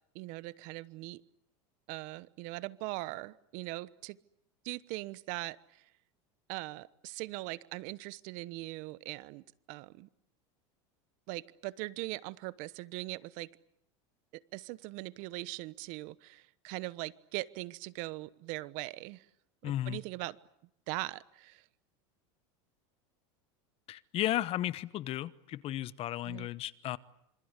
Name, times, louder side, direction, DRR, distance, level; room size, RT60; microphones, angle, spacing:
voice 1, 0.1-1.2 1.9-4.2 4.6-5.8 6.5-10.1 11.3-13.5 14.3-19.3 19.6-20.4 20.9-21.6 26.2-26.5, right 20 dB, 60° right, 18 dB, 1.1 m, -41 dB
voice 2, 19.6-20.0 23.9-27.0, left 13 dB, 40° left, 17 dB, 1.1 m, -34 dB
27.5 x 25.5 x 8.2 m, 0.75 s
supercardioid pair, 130°, 15 cm